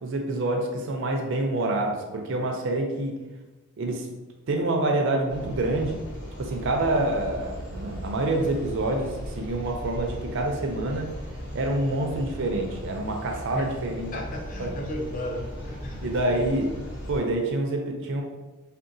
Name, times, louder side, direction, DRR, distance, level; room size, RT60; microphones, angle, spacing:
voice 1, 0.0-3.2 3.8-4.1 4.5-6.0 6.4-11.1 11.5-14.1 14.6-14.7 16.0-16.8 17.1-18.2, right 2 dB, 55° right, 2 dB, 0.4 m, -27 dB
sound 1, 5.3-17.2, equal, 55° left, 1.2 m, -38 dB
voice 2, 14.1-16.4, left 1 dB, 35° left, -1 dB, 0.5 m, -35 dB
3.6 x 2.3 x 2.6 m, 1.2 s
head